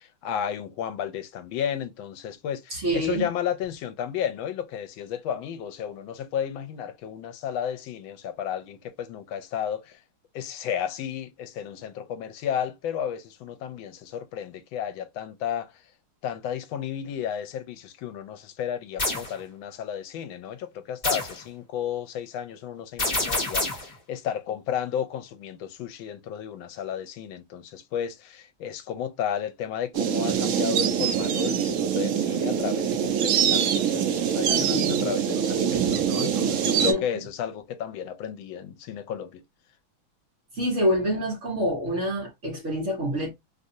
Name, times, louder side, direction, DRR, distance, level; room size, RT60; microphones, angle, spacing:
voice 1, 0.0-10.0 10.3-15.8 16.2-39.4, left 9 dB, 80° left, 1.3 m, -33 dB
voice 2, 2.7-3.3 34.5-35.0 36.9-37.0 40.5-43.3, equal, 45° right, 1.2 m, -26 dB
sound 1, 19.0-19.3 21.0-21.4 23.0-23.9, left 2 dB, 25° left, 1.3 m, -27 dB
sound 2, 29.9-36.9, right 8 dB, 80° right, 0.7 m, -24 dB
3.4 x 2.6 x 2.6 m
omnidirectional pair, 2.2 m